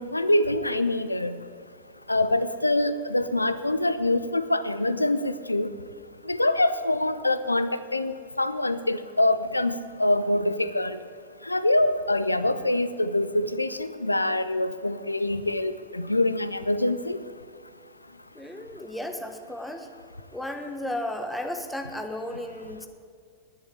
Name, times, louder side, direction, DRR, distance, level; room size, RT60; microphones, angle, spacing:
voice 1, 0.0-1.4 2.1-5.7 6.3-11.0 11.4-17.2, left 1 dB, 85° left, 13 dB, 0.6 m, -25 dB
voice 2, 18.3-19.9 20.3-22.9, left 1 dB, 5° left, 5 dB, 1.2 m, -34 dB
11.0 x 10.0 x 8.9 m, 2.2 s
figure-of-eight pair, 90°, 0 cm